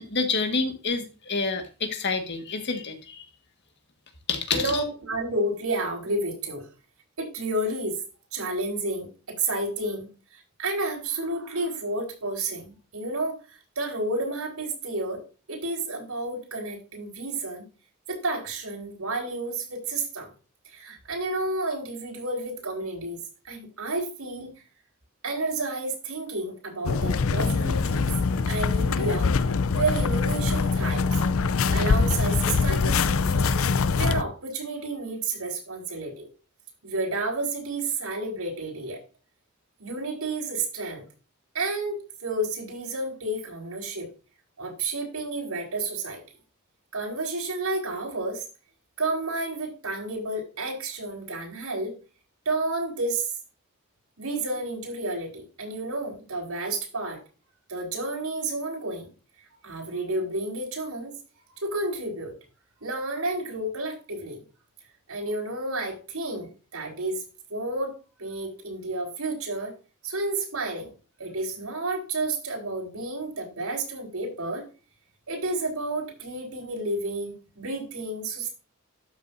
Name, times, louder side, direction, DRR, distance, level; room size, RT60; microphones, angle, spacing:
voice 1, 0.0-3.2 4.3-4.8, left 4 dB, 55° left, 6 dB, 1.7 m, -28 dB
voice 2, 4.5-6.7 7.2-8.0 8.3-13.4 13.7-15.2 15.5-17.6 18.1-20.3 20.7-24.5 25.2-28.1 28.5-29.3 29.7-31.0 31.7-36.3 36.8-39.0 39.8-41.0 41.5-44.1 44.6-46.2 46.9-48.4 49.0-51.9 52.4-53.3 54.2-57.2 57.7-59.1 59.6-61.2 61.5-62.3 62.8-64.4 65.1-67.2 67.5-67.9 68.2-69.7 70.0-70.9 71.2-74.7 75.3-78.5, right 2 dB, 85° right, 0 dB, 4.7 m, -31 dB
sound 1, 26.9-34.2, left 4 dB, 70° left, 0.5 m, -23 dB
12.5 x 6.7 x 2.7 m, 0.33 s
head